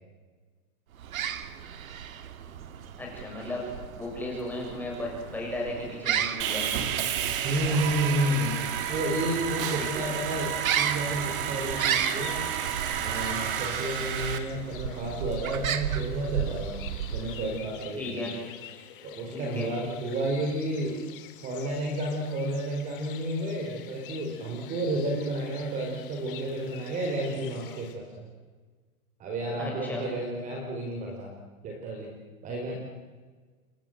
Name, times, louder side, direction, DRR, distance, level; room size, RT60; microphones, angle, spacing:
sound 1, 0.9-17.7, right 9 dB, 65° right, 2.5 m, -34 dB
voice 1, 3.0-3.6 4.0-6.7 9.8-9.9 18.0-18.3 19.3-19.7 29.6-30.1, left 2 dB, 5° left, -2 dB, 7.0 m, -35 dB
Sawing, 6.4-14.4, right 9 dB, 35° right, 2.7 m, -31 dB
voice 2, 7.4-12.4 13.0-16.8 17.1-18.3 19.0-21.0 21.4-28.3 29.2-31.3 31.6-32.1 32.4-32.7, right 1 dB, 15° right, 0 dB, 4.3 m, -31 dB
sound 2, 11.7-27.9, left 11 dB, 35° left, 3.2 m, -47 dB
29.0 x 23.5 x 7.9 m, 1.4 s
hypercardioid pair, 170°, 44 cm